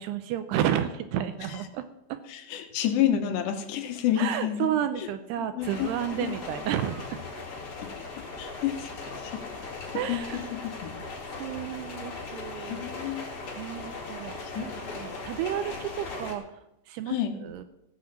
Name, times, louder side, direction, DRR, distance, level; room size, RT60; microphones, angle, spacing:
voice 1, 0.0-2.2 4.2-7.2 9.9-10.6 11.4-13.2 13.6-16.4 16.9-17.2 17.4-17.6, right 10 dB, 80° right, 10 dB, 2.4 m, -32 dB
voice 2, 2.3-4.7 4.9-5.1 5.4-6.4 7.8-7.9 8.2-9.4 9.9-11.2 12.5-13.3 14.4-14.7 17.1-17.4, left 10 dB, 75° left, 6 dB, 3.0 m, -30 dB
sound 1, 5.6-16.3, left 3 dB, 40° left, 2.2 m, -39 dB
16.5 x 6.3 x 7.4 m, 0.86 s
omnidirectional pair, 5.4 m